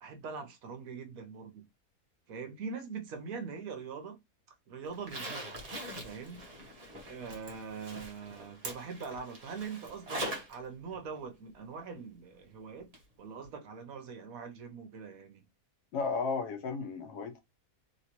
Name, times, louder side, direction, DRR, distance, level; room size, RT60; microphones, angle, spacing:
voice 1, 0.0-1.6 2.3-4.2 4.7-5.6 6.0-6.4 7.1-12.9 13.2-15.4, right 5 dB, 70° right, 1.1 m, -42 dB
Zipper (clothing), 4.9-10.6 10.9-11.0 12.9-13.0 13.4-13.5, right 1 dB, 30° right, 0.8 m, -42 dB
voice 2, 15.9-17.4, left 4 dB, 90° left, 1.3 m, -34 dB
3.1 x 2.9 x 2.9 m
omnidirectional pair, 1.6 m